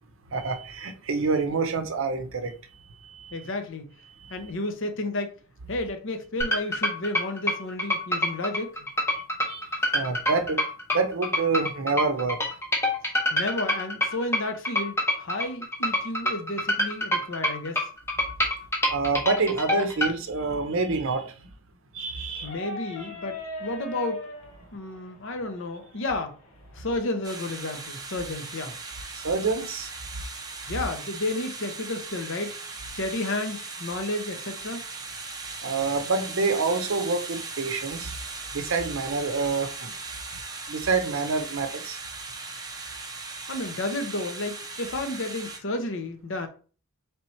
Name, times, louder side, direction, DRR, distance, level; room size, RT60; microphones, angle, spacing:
voice 1, 0.3-2.5 3.0-3.4 4.2-4.3 9.5-9.6 9.9-10.6 10.9-12.4 18.9-21.3 21.9-22.6 29.1-29.9 35.6-38.1 38.5-39.9 40.7-42.0, right 4 dB, 60° right, 0.6 m, -27 dB
voice 2, 3.3-3.9 4.3-5.3 5.7-8.7 13.3-17.9 22.4-24.3 24.7-26.4 26.7-28.7 30.7-32.5 32.9-34.8 43.5-46.5, left 2 dB, 60° left, 0.8 m, -32 dB
sound 1, 6.4-20.1, equal, 10° left, 0.9 m, -26 dB
sound 2, 22.4-28.0, equal, 90° left, 1.1 m, -41 dB
sound 3, 27.2-45.6, right 4 dB, 15° right, 0.6 m, -38 dB
3.4 x 2.8 x 4.3 m
head